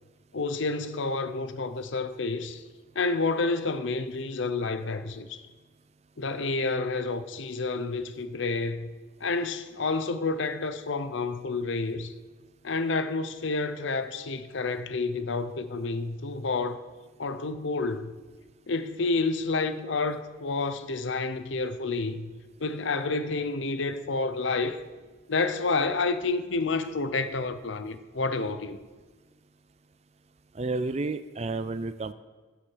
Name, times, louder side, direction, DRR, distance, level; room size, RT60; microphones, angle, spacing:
voice 1, 0.3-2.6 2.9-5.4 6.2-8.9 9.2-12.1 12.6-16.8 17.2-18.1 18.7-22.3 22.6-24.8 25.3-28.8, left 3 dB, 70° left, 0.7 m, -29 dB
voice 2, 30.5-32.1, right 3 dB, 35° right, 0.4 m, -31 dB
15.5 x 6.0 x 6.2 m
head